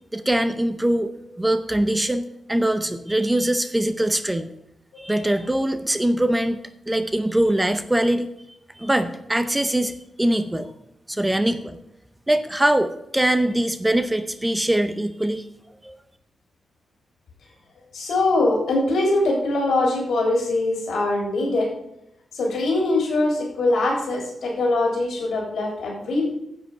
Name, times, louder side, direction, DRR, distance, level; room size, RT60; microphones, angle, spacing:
voice 1, 0.1-4.5 5.0-6.6 6.9-8.3 8.8-10.7 11.1-11.8 12.3-15.4 15.8-15.9, right 1 dB, 10° right, 10 dB, 0.6 m, -22 dB
voice 2, 17.9-21.7 22.3-26.3, left 2 dB, 80° left, -1 dB, 3.5 m, -22 dB
9.8 x 7.8 x 4.8 m, 0.80 s
wide cardioid pair, 170°, 0 cm